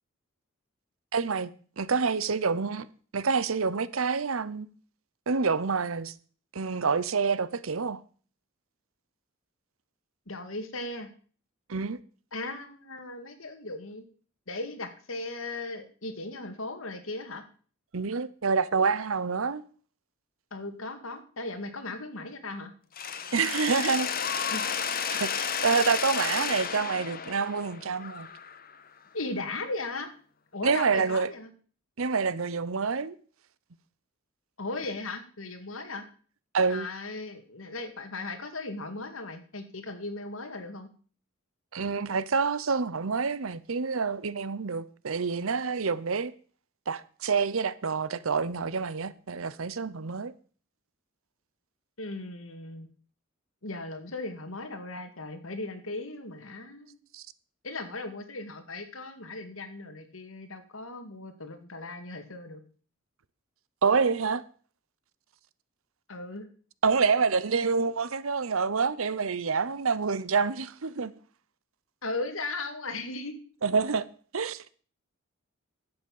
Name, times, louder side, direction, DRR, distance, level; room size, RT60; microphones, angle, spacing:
voice 1, 1.1-1.5 1.8-2.9 3.1-4.7 5.3-6.1 6.5-8.0 11.7-12.0 17.9-19.6 23.3-24.4 25.1-28.3 30.6-31.3 32.0-33.1 36.5-36.9 41.7-46.3 46.9-50.3 57.1-57.2 63.8-64.4 66.8-71.1 73.6-74.1 74.3-74.7, right 5 dB, 80° right, 0.8 m, -27 dB
voice 2, 10.3-11.1 12.3-14.0 14.5-17.4 20.5-22.7 24.5-24.6 29.1-30.1 30.5-31.5 34.6-36.1 36.7-40.9 52.0-52.9 53.6-57.0 57.6-62.6 66.1-66.5 72.0-73.4, left 2 dB, 75° left, 2.2 m, -37 dB
Mechanisms, 23.0-28.8, left 7 dB, 45° left, 1.2 m, -32 dB
11.5 x 8.0 x 7.2 m
head